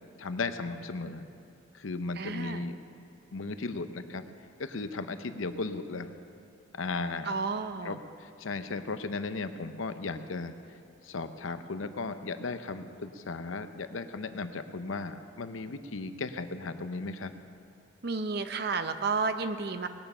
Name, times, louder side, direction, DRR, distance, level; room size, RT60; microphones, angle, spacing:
voice 1, 0.2-1.2 1.7-2.8 3.3-4.2 4.6-6.1 6.8-7.4 7.8-10.5 11.0-17.3, left 3 dB, 85° left, 10 dB, 0.7 m, -36 dB
voice 2, 2.2-2.6 7.3-8.0 18.0-19.9, right 4 dB, 55° right, 9 dB, 0.7 m, -31 dB
19.5 x 8.9 x 5.6 m, 2.5 s
head